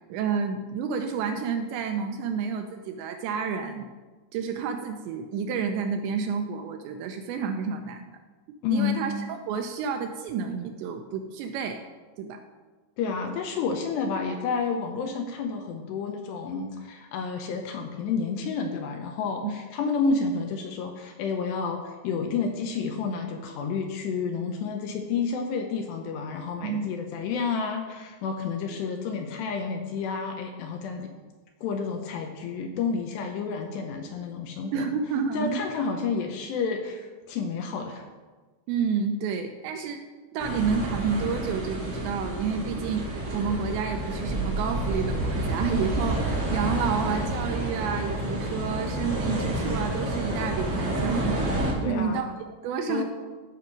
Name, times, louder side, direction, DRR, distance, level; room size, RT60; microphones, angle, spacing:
voice 1, 0.1-3.9 4.3-8.2 8.7-11.8 12.2-12.4 19.4-19.6 26.6-26.9 34.7-35.7 38.7-40.0 40.3-51.5 51.9-52.3 52.6-53.0, right 6 dB, 80° right, 5 dB, 2.7 m, -30 dB
voice 2, 8.6-9.0 13.0-31.1 31.6-34.9 35.3-38.1 51.8-52.2 52.9-53.0, left 5 dB, 75° left, 4 dB, 2.6 m, -30 dB
sound 1, 40.4-51.7, right 1 dB, 40° right, 3.9 m, -29 dB
14.5 x 5.0 x 6.0 m, 1.3 s
omnidirectional pair, 5.5 m